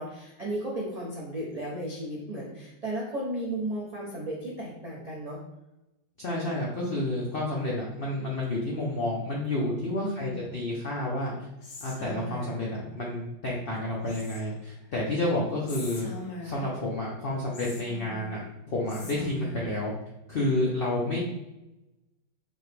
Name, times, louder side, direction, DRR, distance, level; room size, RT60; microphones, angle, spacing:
voice 1, 0.0-5.4 10.0-10.6 21.1-21.2, right 1 dB, 85° right, -6 dB, 0.3 m, -35 dB
voice 2, 6.2-11.3 11.8-16.1 16.4-18.4 18.7-19.9 20.3-21.2, left 1 dB, 75° left, -4 dB, 0.5 m, -30 dB
Whispering, 11.6-12.7 14.1-14.7 15.7-16.8 17.5-18.4 18.9-19.7, left 1 dB, 60° left, 0.9 m, -42 dB
4.2 x 2.9 x 3.3 m, 0.95 s
omnidirectional pair, 1.9 m